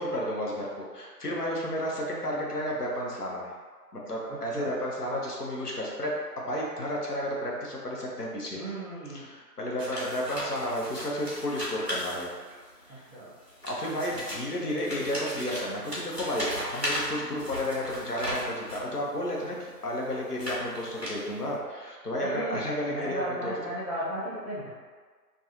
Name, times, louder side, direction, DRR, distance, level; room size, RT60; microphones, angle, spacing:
voice 1, 0.0-3.5 3.9-8.6 9.0-12.3 12.9-13.0 13.7-23.5, equal, 65° left, -3 dB, 0.7 m, -32 dB
voice 2, 4.3-4.7 8.5-9.3 12.9-13.3 22.2-22.6 22.9-24.7, right 1 dB, ahead, -16 dB, 0.6 m, -35 dB
sound 1, 9.8-12.7 13.4-18.9 19.6-21.5, equal, 40° right, 0.6 m, -36 dB
2.4 x 2.2 x 2.9 m, 1.5 s
figure-of-eight pair, 170°, 50 cm